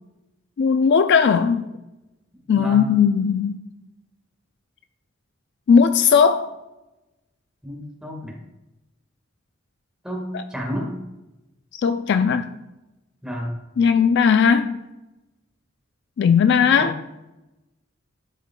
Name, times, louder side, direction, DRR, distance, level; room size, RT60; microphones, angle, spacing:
voice 1, 0.6-1.7 2.5-3.6 5.7-6.5 10.3-10.4 11.8-12.6 13.8-14.8 16.2-16.9, left 6 dB, 60° left, 9 dB, 0.3 m, -17 dB
voice 2, 7.6-8.3 10.0-10.9 13.2-13.5 16.8-16.9, equal, 5° right, -1 dB, 1.5 m, -31 dB
12.0 x 4.8 x 2.2 m, 1.0 s
head